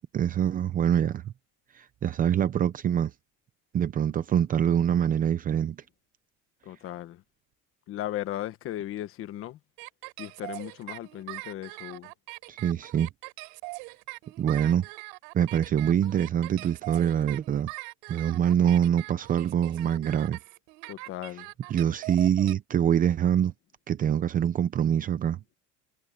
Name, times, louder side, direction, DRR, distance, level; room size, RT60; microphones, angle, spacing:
voice 1, 0.1-1.3 1.8-3.1 3.7-5.8 12.5-13.1 14.4-14.9 15.3-17.7 18.1-20.4 21.7-23.5 23.9-25.4, right 9 dB, 25° right, 0.7 m, -25 dB
voice 2, 6.6-7.2 7.9-9.6 10.2-12.1 20.9-21.5, left 13 dB, 40° left, 1.3 m, -36 dB
sound 1, 9.8-22.5, right 29 dB, 90° right, 5.3 m, -42 dB
cardioid pair, 175°, 34 cm